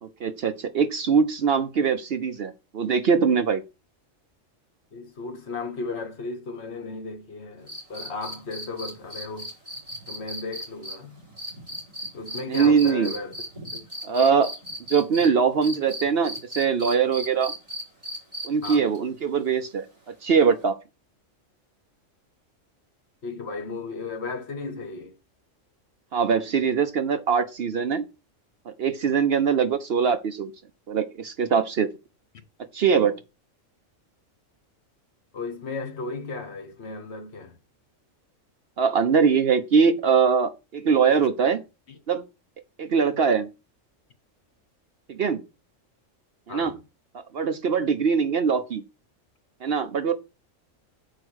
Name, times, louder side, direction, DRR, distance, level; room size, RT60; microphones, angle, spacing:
voice 1, 0.0-3.6 12.5-13.1 14.0-14.5 14.9-17.5 18.4-19.9 20.2-20.8 26.1-28.0 28.8-30.5 30.9-31.9 32.7-33.2 38.8-41.6 42.1-42.2 42.8-43.5 45.1-45.4 46.5-46.7 47.3-48.8 49.6-50.1, right 6 dB, 55° right, 0.8 m, -22 dB
voice 2, 4.9-9.5 10.1-11.2 12.1-13.4 13.7-13.8 18.6-18.9 23.2-25.2 35.3-37.6 41.2-41.3 41.9-42.0 46.5-46.8, left 3 dB, 55° left, 1.3 m, -35 dB
sound 1, 7.7-15.3 15.6-19.0 20.6-20.7, equal, 25° right, 4.5 m, -36 dB
6.5 x 4.7 x 6.2 m
omnidirectional pair, 1.4 m